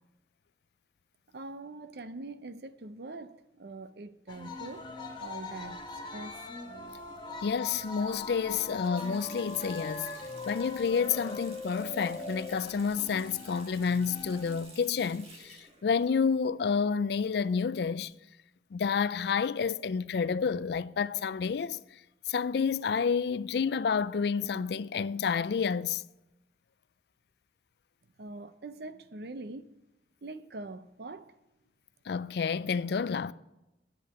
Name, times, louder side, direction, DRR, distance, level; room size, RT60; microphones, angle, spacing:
voice 1, 1.3-4.9 5.2-5.9 6.1-6.4 28.2-29.7 30.2-31.3, right 2 dB, 60° right, 0.6 m, -43 dB
sound 1, 4.3-14.6, left 3 dB, 25° left, 1.4 m, -41 dB
voice 2, 7.4-10.1 10.5-18.1 18.7-21.8 22.3-26.0 32.1-33.3, left 6 dB, 60° left, 0.4 m, -29 dB
Water tap faucet, 8.8-16.6 16.9-17.9, right 3 dB, 35° right, 1.8 m, -54 dB
9.4 x 8.4 x 8.4 m
head